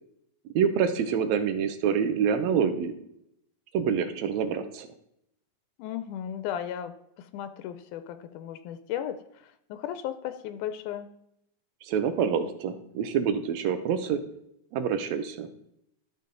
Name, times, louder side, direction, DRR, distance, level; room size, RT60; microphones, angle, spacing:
voice 1, 0.6-2.9 3.7-4.9 11.8-14.2 14.7-15.5, right 7 dB, 75° right, 9 dB, 1.8 m, -26 dB
voice 2, 5.8-11.1, left 10 dB, 85° left, 11 dB, 2.1 m, -36 dB
12.0 x 5.3 x 3.9 m, 0.77 s
omnidirectional pair, 3.5 m